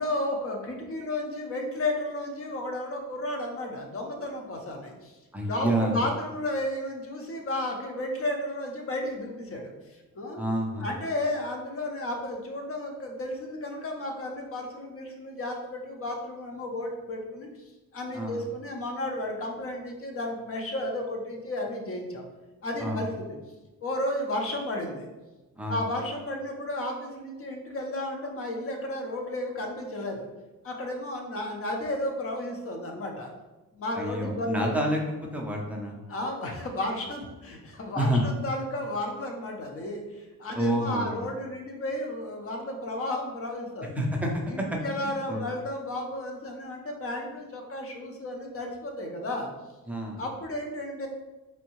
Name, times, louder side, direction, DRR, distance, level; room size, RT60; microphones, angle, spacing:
voice 1, 0.0-5.2 5.5-10.4 10.8-17.5 17.9-22.3 22.6-23.4 23.8-25.1 25.7-30.3 30.6-33.3 33.7-34.7 36.1-44.0 44.5-49.5 50.2-51.1, left 1 dB, 35° left, 2 dB, 0.6 m, -33 dB
voice 2, 5.3-6.0 10.4-10.9 18.1-18.4 22.8-23.1 25.6-25.8 33.9-35.0 35.3-36.0 38.0-38.2 40.5-41.2 43.9-44.3 44.6-45.4 49.9-50.2, right 1 dB, 5° right, -2 dB, 0.4 m, -28 dB
4.4 x 2.6 x 3.0 m, 1.1 s
wide cardioid pair, 170°, 37 cm